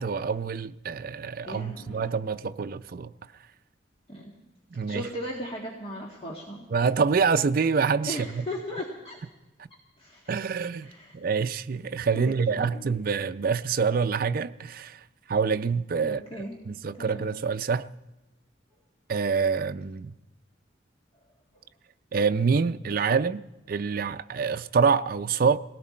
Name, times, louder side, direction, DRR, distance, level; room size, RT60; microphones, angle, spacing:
voice 1, 0.0-3.1 4.7-5.1 6.7-8.5 10.3-17.9 19.1-20.1 22.1-25.6, right 5 dB, 50° right, 0.5 m, -26 dB
voice 2, 1.4-2.0 4.1-4.3 4.9-6.7 8.1-9.2 10.0-10.2 10.8-11.1 12.1-12.9 16.0-16.6 17.0-17.3, equal, 30° left, 1.9 m, -37 dB
19.0 x 18.0 x 4.3 m
head